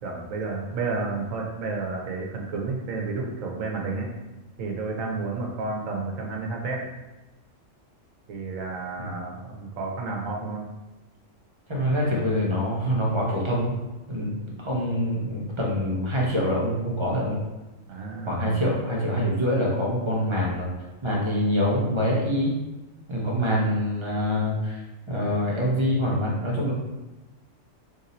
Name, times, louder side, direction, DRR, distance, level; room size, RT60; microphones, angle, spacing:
voice 1, 0.0-4.1 4.6-6.9 8.3-10.7 17.9-18.6, right 3 dB, 80° right, 1 dB, 1.2 m, -31 dB
voice 2, 11.7-13.7 14.1-17.4 18.3-20.7 21.0-22.5 23.1-26.7, equal, 25° right, -4 dB, 0.7 m, -25 dB
3.4 x 2.6 x 4.1 m, 1.1 s
omnidirectional pair, 1.3 m